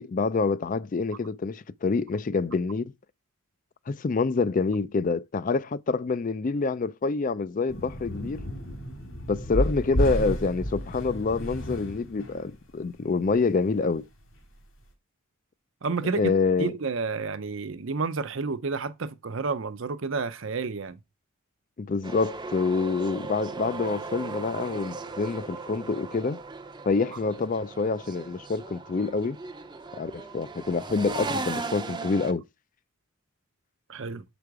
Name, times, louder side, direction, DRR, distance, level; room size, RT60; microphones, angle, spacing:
voice 1, 0.0-2.9 3.9-8.4 9.3-14.1 16.1-16.7 21.8-26.4 26.9-29.4 30.0-32.5, left 4 dB, 40° left, 0.4 m, -27 dB
sound 1, 7.7-12.5 13.1-13.4 13.7-13.8 14.4-14.5, equal, 70° left, 2.5 m, -31 dB
voice 2, 15.8-16.3 16.6-21.0 33.9-34.2, right 4 dB, 60° right, 0.7 m, -30 dB
sound 2, 22.0-32.3, right 3 dB, 20° right, 0.6 m, -37 dB
7.7 x 5.1 x 4.7 m
head